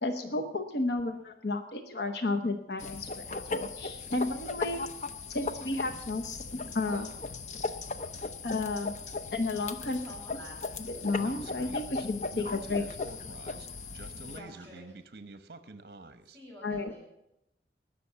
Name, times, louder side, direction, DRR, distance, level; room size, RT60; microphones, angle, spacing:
voice 1, 0.0-4.8 5.3-7.1 8.4-9.0 9.3-10.0 10.9-12.8 16.6-16.9, left 2 dB, 65° left, 6 dB, 0.9 m, -32 dB
sound 1, 2.8-14.4, left 3 dB, 40° left, 0.7 m, -38 dB
voice 2, 9.8-10.6 14.3-15.1 16.3-17.0, equal, 10° left, -4 dB, 6.0 m, -48 dB
Speech, 11.2-16.4, right 2 dB, 60° right, 0.9 m, -48 dB
19.5 x 6.8 x 6.9 m, 0.85 s
head